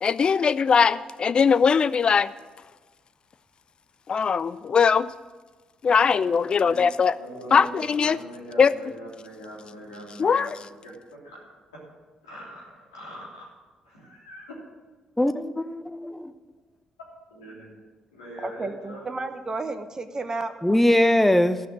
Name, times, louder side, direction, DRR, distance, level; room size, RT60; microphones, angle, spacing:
voice 1, 0.0-2.3 4.1-5.1 5.8-7.1 7.5-8.2 8.6-8.7 10.2-10.5, left 6 dB, 45° left, 0.5 m, -20 dB
voice 2, 6.5-6.9 7.2-11.4 12.2-13.5 13.8-14.5 17.3-17.8 18.1-19.2, right 1 dB, 85° left, 3.3 m, -42 dB
voice 3, 15.2-16.3 20.6-21.6, left 1 dB, 10° left, 0.9 m, -21 dB
voice 4, 18.4-20.5, right 3 dB, 30° right, 1.0 m, -32 dB
13.0 x 6.0 x 8.7 m
hypercardioid pair, 45°, 2 cm